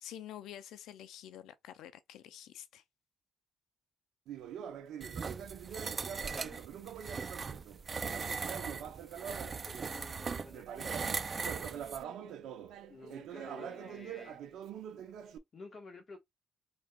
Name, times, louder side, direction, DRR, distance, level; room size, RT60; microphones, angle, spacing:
voice 1, 0.0-2.8, left 11 dB, 85° left, 0.5 m, -48 dB
Conversation, 4.3-10.0 10.5-15.4, right 9 dB, 80° right, 0.7 m, -45 dB
sound 1, 5.0-12.0, right 5 dB, 40° right, 0.4 m, -39 dB
voice 2, 5.9-6.7 9.2-11.8 12.9-14.5 15.2-16.2, left 3 dB, 45° left, 1.4 m, -53 dB
4.9 x 3.4 x 2.4 m
cardioid pair, 90°, 0 cm